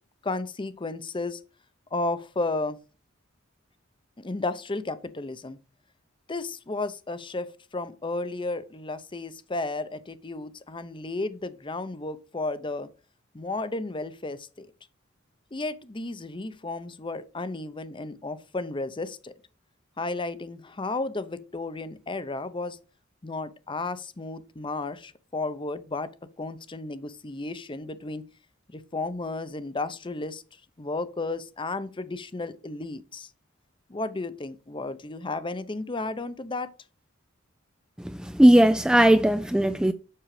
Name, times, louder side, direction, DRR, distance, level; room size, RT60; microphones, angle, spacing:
voice 1, 0.2-1.4 1.9-2.8 4.2-5.6 6.3-12.9 13.3-14.7 15.5-19.3 20.0-22.8 23.2-26.1 26.4-28.2 28.7-30.4 30.8-33.3 33.9-36.7, left 2 dB, 25° left, 0.7 m, -33 dB
voice 2, 38.2-39.9, right 1 dB, 5° right, 0.3 m, -18 dB
7.5 x 6.3 x 4.8 m
head